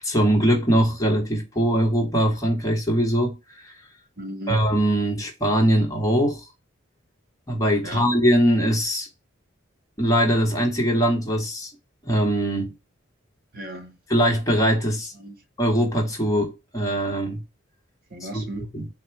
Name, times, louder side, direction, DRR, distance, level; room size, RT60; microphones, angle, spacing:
voice 1, 0.0-3.7 4.5-6.4 7.5-9.1 10.0-11.7 12.0-12.7 14.1-15.1 15.6-17.4 18.3-18.4 18.7-18.8, equal, 15° left, 1.0 m, -21 dB
voice 2, 4.2-4.6 7.8-8.1 13.5-14.0 15.1-15.4 18.1-18.7, right 1 dB, 45° right, 1.1 m, -36 dB
4.1 x 2.2 x 4.4 m
head